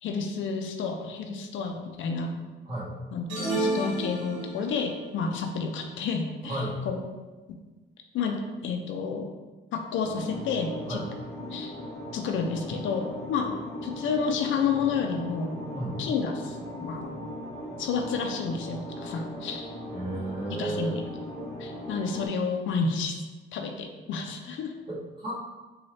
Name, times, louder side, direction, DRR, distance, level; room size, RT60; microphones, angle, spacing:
voice 1, 0.0-2.4 3.1-7.0 8.1-9.3 9.7-11.0 11.5-11.7 12.1-13.5 13.8-15.5 16.0-17.1 17.8-19.7 20.6-21.1 21.6-23.2 23.5-24.7, left 5 dB, 75° left, 4 dB, 0.5 m, -30 dB
sound 1, 3.3-4.8, right 2 dB, 75° right, 1.1 m, -30 dB
voice 2, 6.4-6.7 10.9-11.0 15.7-15.9 19.9-21.0 24.9-25.4, right 1 dB, 25° right, -7 dB, 1.5 m, -33 dB
sound 2, 10.0-22.3, left 1 dB, 5° left, 1.4 m, -39 dB
4.0 x 2.3 x 3.2 m, 1.2 s
cardioid pair, 90°, 20 cm